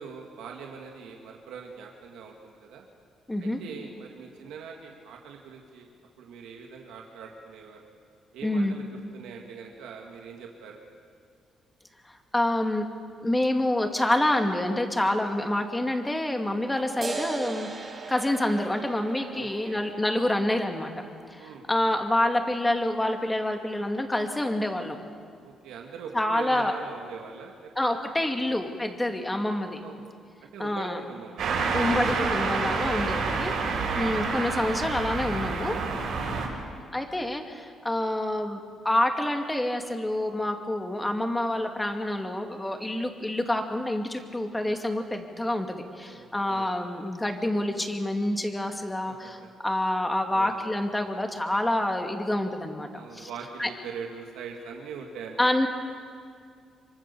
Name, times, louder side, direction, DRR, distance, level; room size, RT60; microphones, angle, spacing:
voice 1, 0.0-2.8 3.4-5.9 6.2-7.9 8.3-8.8 9.1-10.8 19.3-19.9 21.4-21.7 25.4-27.7 28.4-28.6 29.6-30.1 30.4-31.6 33.0-33.3 33.5-33.8 36.2-36.5 46.1-46.8 49.1-49.5 50.3-50.6 52.9-55.5, right 6 dB, 90° right, 1 dB, 2.2 m, -42 dB
voice 2, 3.3-3.6 8.4-8.8 12.1-12.8 13.2-17.7 18.1-20.9 21.3-25.0 26.1-26.8 27.8-29.8 30.6-31.0 31.7-33.5 33.9-35.8 36.9-53.3 53.6-53.7 55.4-55.7, left 1 dB, 10° left, 4 dB, 2.6 m, -27 dB
sound 1, 17.0-24.0, right 4 dB, 35° right, 2.6 m, -40 dB
sound 2, 31.4-36.5, right 4 dB, 75° right, 6.6 m, -28 dB
25.0 x 24.5 x 7.1 m, 2.2 s
cardioid pair, 90°, 0 cm